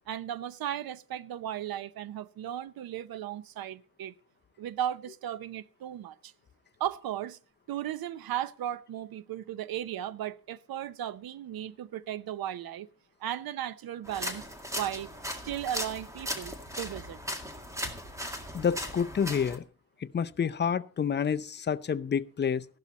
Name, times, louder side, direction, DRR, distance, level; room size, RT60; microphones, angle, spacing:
voice 1, 0.1-4.1 4.6-6.3 6.8-7.4 7.7-12.9 13.2-14.5 14.7-15.1 15.4-17.2, right 11 dB, 85° right, 0.8 m, -36 dB
sound 1, 14.0-19.6, equal, 10° right, 1.9 m, -38 dB
voice 2, 18.5-19.6 20.1-22.7, left 7 dB, 30° left, 0.6 m, -28 dB
15.0 x 12.0 x 4.2 m
wide cardioid pair, 140°, 35 cm